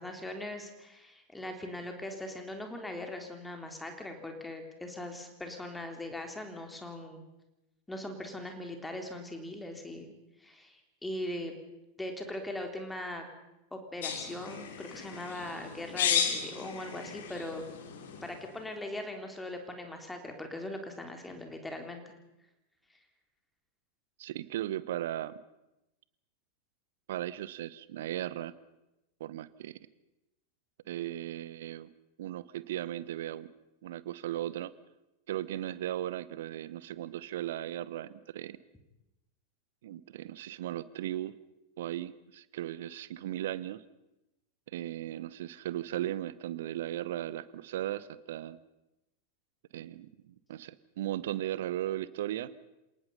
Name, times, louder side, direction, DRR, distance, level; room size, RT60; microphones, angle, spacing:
voice 1, 0.0-7.2 7.9-10.1 10.4-11.5 12.0-13.3 13.7-17.6 18.2-22.0, left 1 dB, 5° left, 4 dB, 3.8 m, -40 dB
sound 1, 14.0-18.5, left 7 dB, 60° left, 2.8 m, -34 dB
voice 2, 24.2-25.4 27.1-28.5 29.2-29.8 30.9-31.9 32.2-33.5 33.8-34.7 35.3-38.6 39.8-41.3 41.8-43.8 44.7-48.6 49.7-52.5, right 13 dB, 55° right, 18 dB, 1.0 m, -37 dB
28.0 x 19.0 x 5.6 m, 0.94 s
figure-of-eight pair, 90°, 0 cm